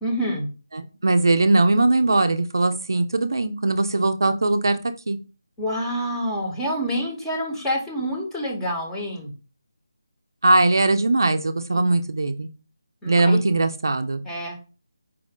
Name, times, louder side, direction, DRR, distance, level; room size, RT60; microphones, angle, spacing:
voice 1, 0.0-0.5 5.6-9.3 11.7-11.9 13.0-13.4 14.2-14.6, equal, 5° left, -3 dB, 0.9 m, -27 dB
voice 2, 0.7-4.8 5.1-5.2 10.4-12.5 13.1-14.2, right 2 dB, 65° right, 8 dB, 0.5 m, -20 dB
4.8 x 2.4 x 3.5 m, 0.34 s
figure-of-eight pair, 160°, 2 cm